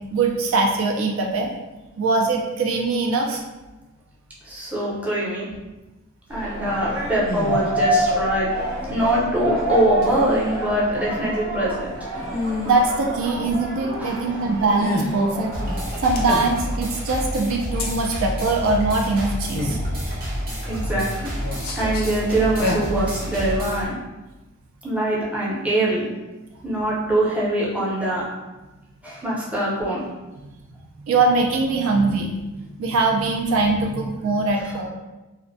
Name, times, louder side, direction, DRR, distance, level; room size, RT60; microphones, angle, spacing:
voice 1, 0.1-1.5 2.0-3.4 12.7-15.5 16.0-20.1 31.0-32.3 32.8-34.9, right 3 dB, 70° right, 1 dB, 0.3 m, -22 dB
voice 2, 4.4-5.5 6.3-8.5 8.9-11.9 14.0-14.5 20.6-21.3 21.8-23.9 24.8-26.1 26.6-28.2 29.0-30.0 34.6-34.7, right 1 dB, 5° right, -7 dB, 0.5 m, -23 dB
sound 1, 6.3-16.6, equal, 90° right, 1.1 m, -28 dB
sound 2, 7.3-7.7 10.0-10.6 12.3-12.9 14.8-15.2 16.2-16.8 17.8-17.9 19.5-19.8 20.5-21.0 21.4-22.1 22.4-22.8, left 2 dB, 45° left, 0.4 m, -28 dB
sound 3, 15.5-23.9, equal, 45° right, 0.7 m, -29 dB
2.4 x 2.1 x 2.5 m, 1.1 s
head